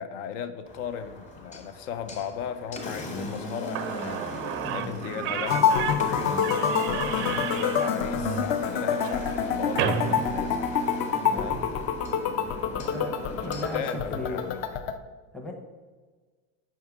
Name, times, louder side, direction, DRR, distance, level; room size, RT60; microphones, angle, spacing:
voice 1, 0.0-4.2 4.7-6.4 7.1-10.7 11.3-11.7 12.7-13.3 13.7-14.8, left 8 dB, 75° left, 0.6 m, -36 dB
Engine, 0.7-14.7, left 1 dB, 20° left, 1.0 m, -37 dB
Slam / Squeak, 3.4-3.5 3.7-11.2, right 8 dB, 35° right, 0.4 m, -33 dB
sound 1, 5.5-15.0, left 7 dB, 40° left, 0.4 m, -27 dB
voice 2, 11.3-11.7 12.7-13.1 13.4-14.5 15.3-15.5, left 1 dB, 5° left, 0.6 m, -37 dB
5.5 x 3.6 x 5.8 m
supercardioid pair, 140°, 36 cm